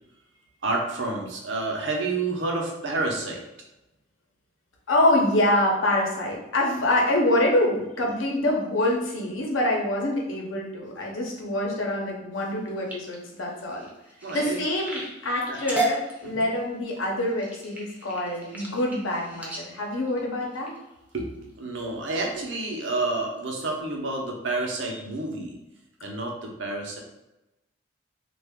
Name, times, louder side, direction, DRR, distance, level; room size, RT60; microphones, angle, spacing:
voice 1, 0.6-3.4 14.2-14.6 15.5-15.6 16.2-16.4 21.1-25.6 26.0-27.0, right 2 dB, 65° right, 0 dB, 0.7 m, -29 dB
voice 2, 4.9-13.9 14.3-20.7, left 1 dB, 85° left, -1 dB, 0.8 m, -25 dB
sound 1, 12.5-21.2 21.8-22.1 22.5-22.9 23.4-23.5 23.8-23.9, right 1 dB, 10° right, 0.5 m, -35 dB
3.2 x 2.4 x 3.5 m, 0.95 s
head